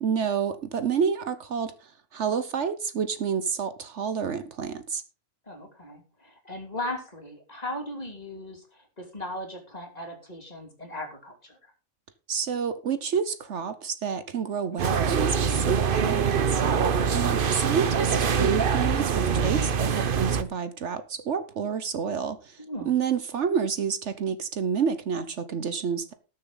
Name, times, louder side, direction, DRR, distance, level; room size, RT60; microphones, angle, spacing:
voice 1, 0.0-5.0 12.3-16.6 17.1-26.1, right 6 dB, 65° right, 1.2 m, -29 dB
voice 2, 5.5-8.6 9.0-11.6 17.0-17.4 22.6-22.9, left 1 dB, 30° left, 2.9 m, -37 dB
sound 1, 14.8-20.4, right 6 dB, 50° right, 0.9 m, -24 dB
19.0 x 6.8 x 3.9 m
omnidirectional pair, 1.3 m